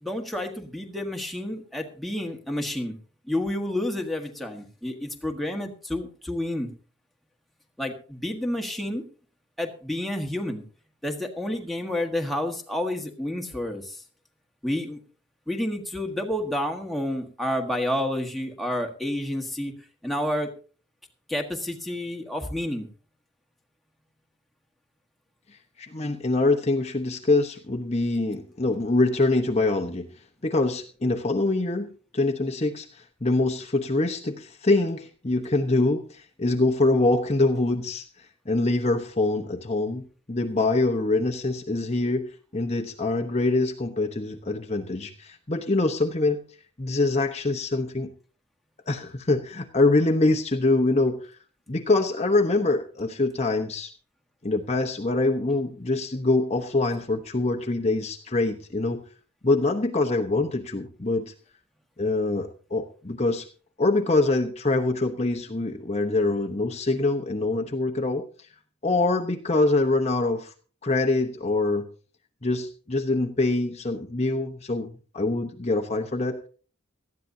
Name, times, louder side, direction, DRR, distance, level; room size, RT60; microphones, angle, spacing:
voice 1, 0.0-3.0 3.3-6.7 7.8-9.0 9.6-10.6 11.0-14.0 14.6-15.0 15.5-19.7 20.0-20.5 21.3-22.9, left 1 dB, ahead, 1 dB, 1.5 m, -29 dB
voice 2, 25.8-30.1 30.4-31.9 32.1-46.4 46.8-48.1 48.9-51.4 51.7-53.9 54.4-59.0 59.4-61.3 62.0-63.5 63.8-68.2 68.8-70.5 70.8-71.8 72.4-76.5, left 2 dB, 30° left, 4 dB, 1.0 m, -24 dB
18.5 x 13.5 x 2.7 m, 0.39 s
head